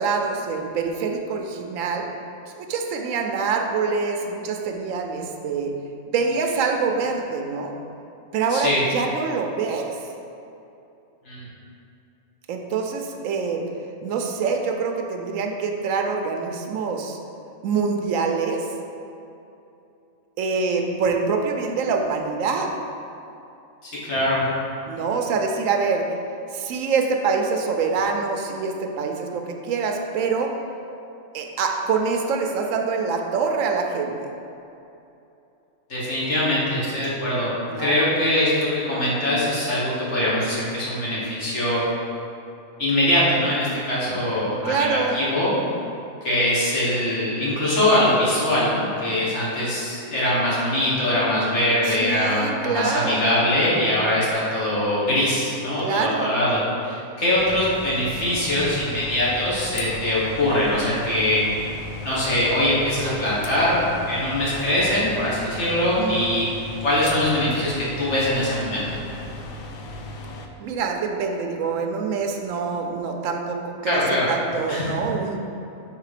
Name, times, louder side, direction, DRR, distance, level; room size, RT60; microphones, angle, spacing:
voice 1, 0.0-2.1 2.6-5.7 6.1-7.7 8.3-10.0 12.5-13.6 14.0-17.2 17.6-18.7 20.4-22.7 24.9-26.0 26.5-30.5 31.3-34.1 37.7-38.0 44.6-45.2 51.8-53.2 55.8-56.4 66.0-66.2 70.6-74.0 74.3-75.4, right 5 dB, 75° right, 3 dB, 1.0 m, -25 dB
voice 2, 8.5-8.8 11.3-11.5 23.8-24.4 35.9-41.8 42.8-45.5 46.2-61.4 62.0-63.8 64.1-66.5 66.8-68.9 73.8-74.3 74.7-74.9, left 1 dB, 55° left, -8 dB, 1.8 m, -22 dB
sound 1, 57.4-70.5, left 1 dB, 80° left, 1.0 m, -36 dB
5.6 x 3.7 x 4.9 m, 2.8 s
omnidirectional pair, 1.4 m